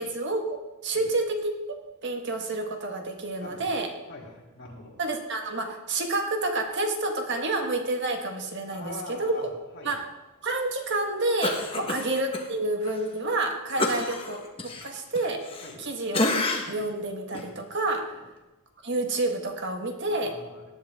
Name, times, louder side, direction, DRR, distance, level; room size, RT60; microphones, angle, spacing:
voice 1, 0.0-1.5 2.0-3.9 5.0-9.5 9.8-10.0 10.4-15.4 15.8-16.2 16.7-18.1 18.8-20.3, right 2 dB, 55° right, 3 dB, 1.7 m, -29 dB
voice 2, 3.4-3.7 4.1-5.0 8.7-9.5 9.7-10.0 11.7-11.9 13.8-13.9 15.6-15.8 18.1-18.2 20.1-20.7, left 2 dB, 60° left, -3 dB, 3.3 m, -42 dB
Cough, 11.4-12.5 12.8-13.0 13.8-15.8 16.1-16.9 17.3-17.5, left 2 dB, 25° left, 1.4 m, -29 dB
18.5 x 11.0 x 3.7 m, 1.0 s
head